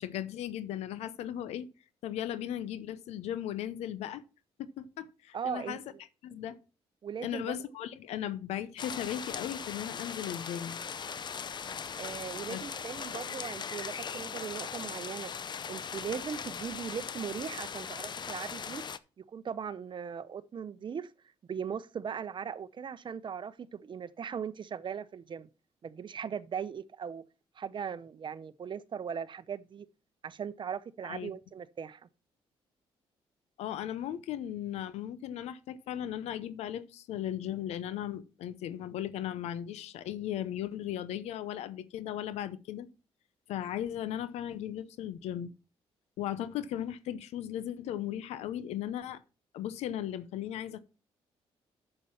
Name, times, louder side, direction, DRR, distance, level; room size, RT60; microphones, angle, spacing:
voice 1, 0.0-1.7 2.0-4.2 4.6-5.8 6.2-6.6 7.2-10.8 12.5-12.6 13.1-13.2 31.0-31.3 33.6-42.9 43.5-45.5 46.2-49.2 49.5-50.8, left 11 dB, 85° left, 0.7 m, -37 dB
voice 2, 5.3-5.8 7.0-7.6 12.0-15.3 15.7-18.8 19.2-21.1 21.5-25.5 25.8-27.2 27.6-29.9 30.2-32.0, right 7 dB, 50° right, 0.8 m, -39 dB
sound 1, 8.8-19.0, left 6 dB, 45° left, 0.6 m, -39 dB
7.3 x 6.8 x 5.8 m
cardioid pair, 80°, 11 cm